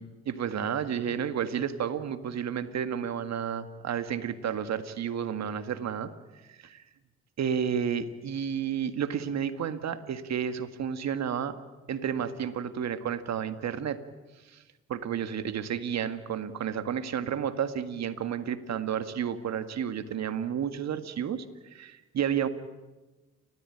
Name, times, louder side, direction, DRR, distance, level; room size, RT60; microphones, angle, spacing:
voice 1, 0.0-6.1 7.4-11.5 11.9-14.0 14.5-14.6 14.9-21.5 21.7-22.5, right 8 dB, 65° right, 11 dB, 1.9 m, -31 dB
29.5 x 14.5 x 10.0 m, 1.2 s
hypercardioid pair, 50°, 29 cm